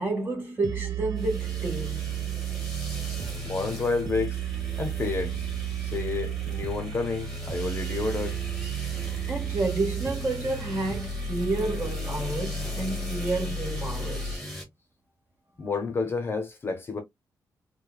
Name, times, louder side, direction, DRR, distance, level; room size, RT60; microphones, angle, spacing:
voice 1, 0.0-2.1 9.3-14.4, right 2 dB, 30° right, 1.5 m, -30 dB
sound 1, 0.6-14.3, right 6 dB, 60° right, 0.5 m, -33 dB
sound 2, 1.2-14.6, left 1 dB, 5° left, 1.4 m, -40 dB
voice 2, 3.4-4.4 4.8-5.4 5.8-8.4 15.6-17.0, left 4 dB, 30° left, 0.7 m, -30 dB
4.8 x 2.2 x 2.2 m
wide cardioid pair, 170°, 7 cm